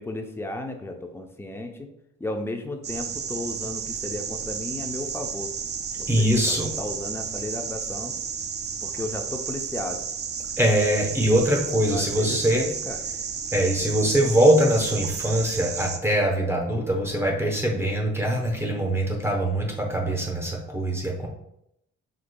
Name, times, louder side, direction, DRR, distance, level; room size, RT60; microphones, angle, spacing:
voice 1, 0.0-1.9 2.2-5.5 6.0-8.1 8.8-10.0 11.8-13.0, left 2 dB, 10° left, 4 dB, 0.5 m, -34 dB
sound 1, 2.8-16.0, right 6 dB, 35° right, 0.4 m, -32 dB
voice 2, 6.1-6.7 10.6-12.7 13.5-21.3, right 1 dB, 10° right, 0 dB, 0.9 m, -22 dB
5.1 x 3.7 x 2.2 m, 0.80 s
cardioid pair, 90°, 30 cm